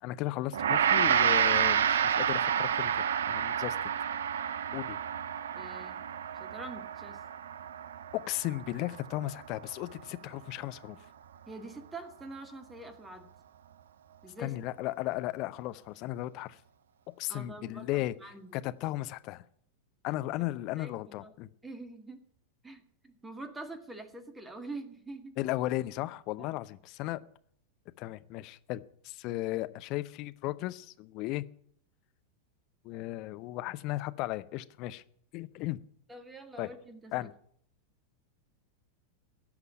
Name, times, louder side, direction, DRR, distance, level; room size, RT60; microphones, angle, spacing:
voice 1, 0.0-3.8 4.7-5.0 8.1-11.0 14.4-16.6 17.2-18.1 18.5-19.4 20.0-21.5 25.4-27.2 28.0-31.4 32.8-35.0 35.3-35.8 36.6-36.7 37.1-37.3, left 17 dB, 40° left, 13 dB, 0.7 m, -35 dB
Gong, 0.5-9.9, right 8 dB, 65° right, 0.5 m, -29 dB
voice 2, 5.6-6.0 6.4-7.2 11.5-13.3 14.2-14.6 17.3-18.7 20.4-20.5 20.7-21.3 21.6-22.2 22.6-25.3 26.4-26.5 36.1-37.3, right 2 dB, 10° right, 8 dB, 1.8 m, -45 dB
16.0 x 6.0 x 9.9 m, 0.63 s
figure-of-eight pair, 90°, 0 cm